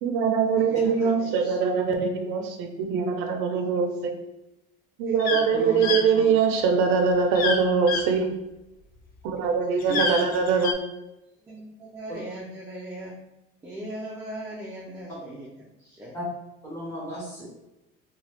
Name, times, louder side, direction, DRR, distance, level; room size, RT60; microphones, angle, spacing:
voice 1, 0.0-4.2 5.0-8.3 9.2-10.7, right 5 dB, 90° right, 4 dB, 0.5 m, -23 dB
voice 2, 0.5-1.6 5.1-5.2 5.6-5.9 9.7-10.2 10.5-10.7 11.5-13.1 13.6-15.5 15.8-16.1, right 1 dB, 15° right, -5 dB, 0.5 m, -39 dB
sound 1, 5.2-5.4 5.8-6.0 7.3-7.6 7.9-8.0 9.8-10.7, left 4 dB, 45° left, 0.4 m, -26 dB
voice 3, 5.5-6.3 9.8-10.2 12.1-12.2 16.1-16.2 16.6-17.5, right 1 dB, 10° left, -8 dB, 1.4 m, -34 dB
3.1 x 2.3 x 2.8 m, 0.94 s
cardioid pair, 150°, 21 cm